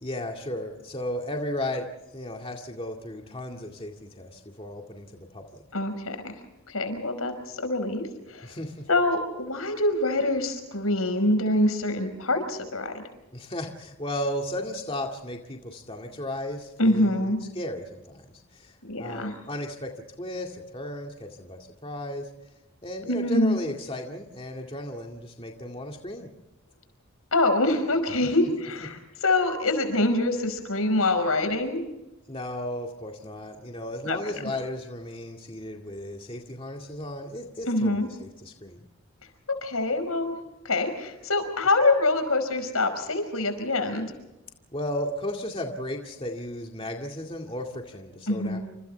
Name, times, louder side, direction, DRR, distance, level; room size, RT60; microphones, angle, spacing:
voice 1, 0.0-1.9 2.1-5.6 8.4-8.9 13.3-17.3 17.5-19.9 20.2-22.3 22.8-26.3 32.3-38.8 44.7-48.6, left 1 dB, 25° left, 1 dB, 2.1 m, -35 dB
voice 2, 5.7-6.2 6.7-8.0 8.3-8.5 8.9-12.9 16.8-17.4 18.9-19.3 23.1-23.6 27.3-31.8 34.1-34.2 37.7-38.1 39.6-40.4 40.7-44.1 48.3-48.6, left 2 dB, 85° left, 8 dB, 5.3 m, -25 dB
29.5 x 27.0 x 3.4 m, 0.95 s
head